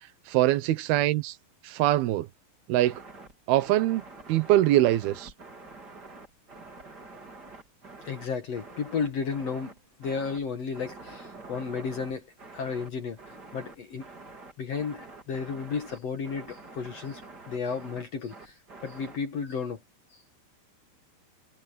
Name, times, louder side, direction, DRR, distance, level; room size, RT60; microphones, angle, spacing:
voice 1, 0.3-1.4 1.6-2.3 2.7-2.9 3.5-4.0 4.3-5.3, right 14 dB, 80° right, 3.0 m, -23 dB
sound 1, 2.8-19.2, right 3 dB, 25° right, 4.3 m, -47 dB
voice 2, 8.1-9.7 10.0-12.3 12.5-13.2 13.5-14.1 14.6-17.2 17.5-18.5 18.8-19.8, left 5 dB, 50° left, 2.2 m, -33 dB
omnidirectional pair, 4.4 m